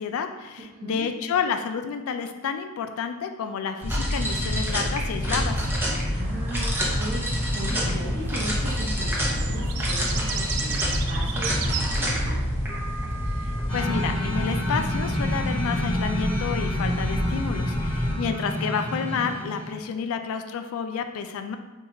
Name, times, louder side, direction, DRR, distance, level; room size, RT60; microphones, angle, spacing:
voice 1, 0.0-5.6 13.4-21.6, left 6 dB, 65° left, 7 dB, 0.3 m, -30 dB
voice 2, 0.7-1.0 6.0-12.4, right 1 dB, 50° right, -9 dB, 0.8 m, -36 dB
sound 1, 3.8-18.2, equal, 10° right, 0.6 m, -27 dB
Birds In City Park, 6.2-12.0, right 7 dB, 80° right, 0.3 m, -36 dB
sound 2, 13.7-19.9, equal, 25° left, 1.3 m, -29 dB
4.5 x 2.3 x 2.9 m, 1.2 s
head